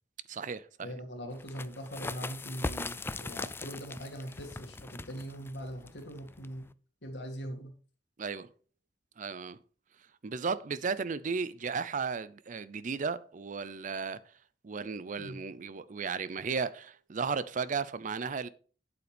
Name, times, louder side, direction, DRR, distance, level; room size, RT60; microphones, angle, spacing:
voice 1, 0.3-0.9 8.2-8.5 9.2-9.6 10.2-14.2 14.6-18.5, right 5 dB, 45° right, 0.5 m, -35 dB
voice 2, 0.8-6.7 7.0-7.7 15.2-15.4, equal, 80° left, 2.3 m, -41 dB
sound 1, 1.4-6.7, left 3 dB, 15° left, 0.3 m, -40 dB
8.5 x 8.1 x 3.5 m
head